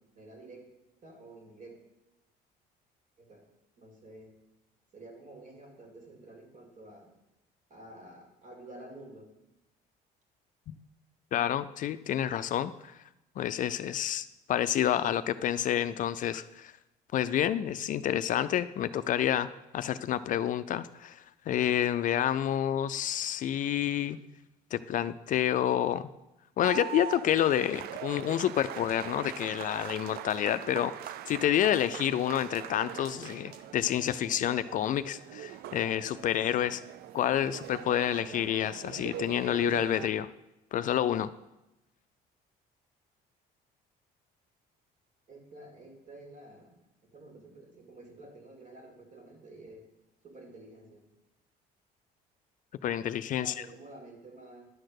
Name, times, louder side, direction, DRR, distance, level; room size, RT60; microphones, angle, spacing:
voice 1, 0.1-0.7 1.0-1.8 3.2-3.5 3.8-4.3 4.9-7.1 7.7-9.3 45.3-46.8 47.1-49.9 50.2-51.0 53.4-54.7, right 1 dB, 50° right, 1 dB, 2.5 m, -50 dB
voice 2, 11.3-13.0 13.4-16.7 17.1-24.2 24.7-26.1 26.6-30.9 31.3-36.8 37.1-40.3 40.7-41.3 52.8-53.5, left 11 dB, 50° left, 13 dB, 0.4 m, -29 dB
sound 1, 26.6-40.1, right 12 dB, 65° right, 0.4 m, -42 dB
10.5 x 4.3 x 6.5 m, 0.93 s
cardioid pair, 110°, 17 cm